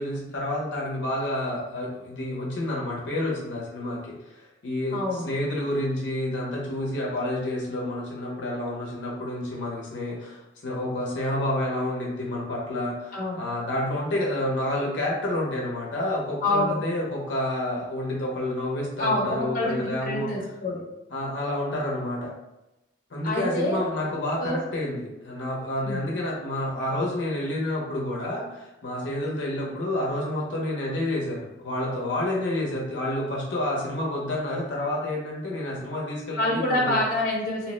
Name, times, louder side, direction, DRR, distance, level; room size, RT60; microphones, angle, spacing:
voice 1, 0.0-20.3 21.1-22.3 23.1-37.0, left 1 dB, 90° left, -3 dB, 0.7 m, -29 dB
voice 2, 4.9-5.2 13.1-13.4 16.4-16.8 19.0-20.8 23.2-23.8 24.4-24.6 25.8-26.0 36.4-37.7, left 1 dB, 50° left, -3 dB, 0.7 m, -26 dB
2.9 x 2.0 x 3.0 m, 0.95 s
head